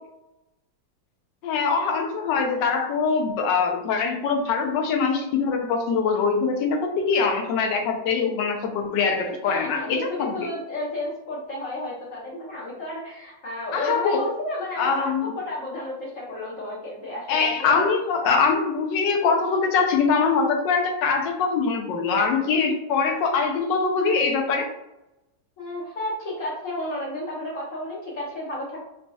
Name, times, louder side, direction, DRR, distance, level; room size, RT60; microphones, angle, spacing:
voice 1, 1.4-10.5 13.7-14.2 14.8-15.3 17.3-24.7, left 5 dB, 75° left, 4 dB, 1.2 m, -23 dB
voice 2, 9.4-17.9 25.6-28.8, left 1 dB, 55° left, -5 dB, 1.0 m, -32 dB
4.1 x 2.7 x 2.3 m, 0.91 s
omnidirectional pair, 2.0 m